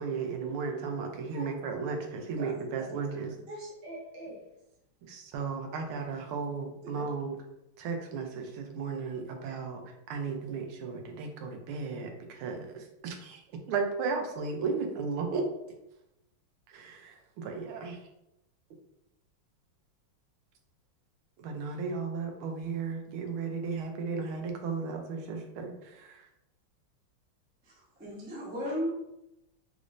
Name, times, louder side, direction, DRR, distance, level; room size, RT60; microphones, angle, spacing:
voice 1, 0.0-3.3 5.0-7.4 7.8-9.8 10.1-13.4 13.7-15.4 16.7-18.0 21.4-26.3, right 5 dB, 90° right, 4 dB, 1.5 m, -35 dB
voice 2, 2.4-4.4 6.8-7.1, right 1 dB, 65° right, -1 dB, 1.4 m, -45 dB
voice 3, 27.6-28.9, equal, 10° right, -6 dB, 0.5 m, -35 dB
4.1 x 3.1 x 2.5 m, 0.87 s
omnidirectional pair, 2.3 m